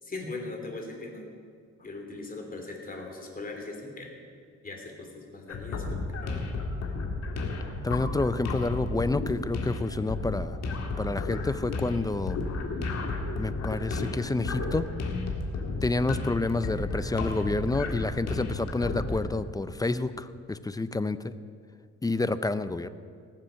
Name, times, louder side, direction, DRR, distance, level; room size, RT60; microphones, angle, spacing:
voice 1, 0.0-1.2 1.8-4.1 4.6-6.4 15.6-15.8, left 2 dB, 30° left, 1 dB, 3.2 m, -40 dB
sound 1, 5.5-19.3, left 3 dB, 60° left, 1.9 m, -33 dB
voice 2, 7.8-10.6 11.0-12.4 13.3-14.9 15.8-21.3 22.0-22.9, left 2 dB, 10° left, 13 dB, 0.5 m, -29 dB
19.0 x 7.5 x 6.4 m, 2.1 s
cardioid pair, 90°, 30 cm